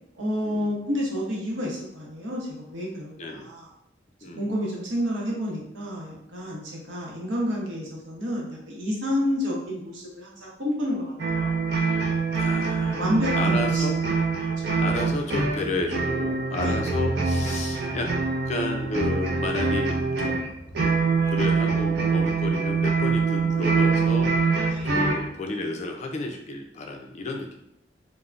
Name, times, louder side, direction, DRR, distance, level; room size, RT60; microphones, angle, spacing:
voice 1, 0.2-3.7 4.4-11.5 12.8-13.9 14.6-14.7 16.6-16.9 24.7-24.9, equal, 85° right, -3 dB, 0.8 m, -30 dB
voice 2, 3.2-3.5 4.2-4.5 12.4-13.0 13.3-14.0 14.8-18.1 18.5-20.5 20.8-20.9 21.3-24.4 24.8-27.6, left 2 dB, 40° left, 3 dB, 0.4 m, -32 dB
sound 1, 11.2-25.3, right 4 dB, 60° right, 0.5 m, -24 dB
3.2 x 2.1 x 2.4 m, 0.79 s
head